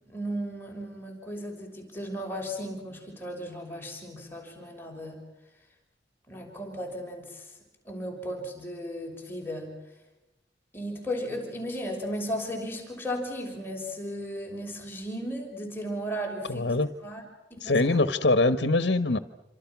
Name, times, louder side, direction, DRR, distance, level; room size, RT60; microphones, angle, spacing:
voice 1, 0.0-5.2 6.3-7.5 7.8-9.7 10.7-16.7 17.0-17.2 17.5-18.0, equal, 15° left, 1 dB, 6.1 m, -35 dB
voice 2, 16.5-16.9 17.6-19.2, left 2 dB, 75° left, 10 dB, 1.3 m, -23 dB
28.0 x 27.0 x 6.1 m, 0.96 s
head